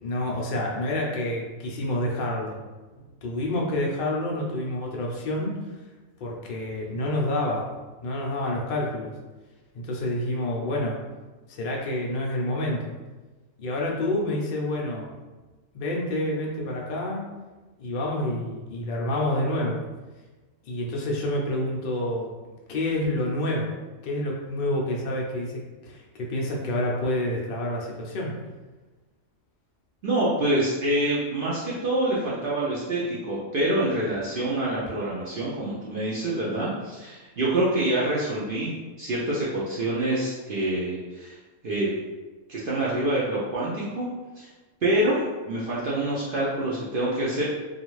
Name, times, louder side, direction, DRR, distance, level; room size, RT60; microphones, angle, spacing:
voice 1, 0.0-2.6 3.2-5.5 6.2-7.7 8.0-9.1 9.7-11.0 11.5-12.8 13.6-15.1 15.7-17.2 17.8-19.8 20.6-22.3 22.7-23.7 24.0-28.3, left 1 dB, 75° left, -2 dB, 0.4 m, -28 dB
voice 2, 30.0-41.4 41.6-41.9 42.5-44.1 44.4-44.5 44.8-47.4, right 1 dB, 65° right, -7 dB, 0.5 m, -26 dB
2.4 x 2.4 x 3.0 m, 1.2 s
omnidirectional pair, 1.4 m